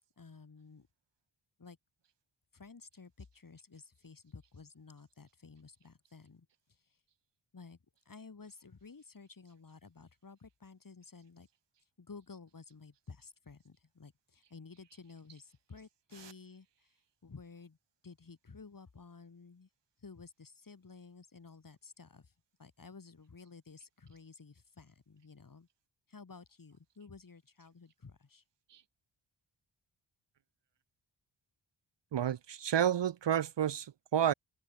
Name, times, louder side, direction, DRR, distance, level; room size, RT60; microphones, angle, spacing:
voice 1, 0.2-0.9 1.6-1.8 2.5-7.0 7.5-7.8 8.1-11.5 12.0-17.0 17.2-17.8 18.0-19.7 20.0-22.3 22.6-25.7 26.1-28.4, left 4 dB, 45° left, 6.0 m, -53 dB
voice 2, 32.1-34.3, right 9 dB, 60° right, 0.7 m, -30 dB
wide cardioid pair, 150°, 47 cm